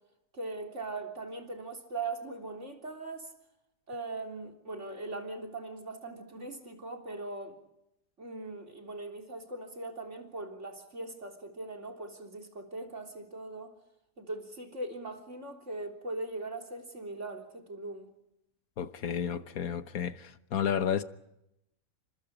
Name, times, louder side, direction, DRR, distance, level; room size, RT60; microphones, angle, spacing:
voice 1, 0.3-3.3 3.9-7.6 8.2-13.7 14.2-18.1, right 2 dB, 50° right, 3.9 m, -40 dB
voice 2, 18.8-21.0, left 8 dB, 75° left, 1.5 m, -32 dB
29.0 x 26.0 x 5.0 m
omnidirectional pair, 1.6 m